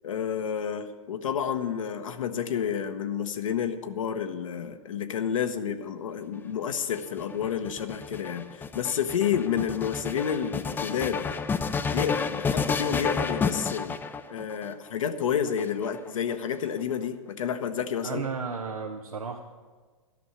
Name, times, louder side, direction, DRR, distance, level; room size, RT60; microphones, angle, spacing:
voice 1, 0.0-11.3 11.9-14.0 14.3-18.3, left 8 dB, 70° left, 8 dB, 0.9 m, -30 dB
sound 1, 6.7-14.7 15.5-16.3, left 5 dB, 10° left, 0.4 m, -30 dB
voice 2, 18.0-19.4, right 5 dB, 85° right, 3 dB, 0.8 m, -33 dB
12.0 x 6.3 x 8.5 m, 1.5 s
figure-of-eight pair, 110°, 18 cm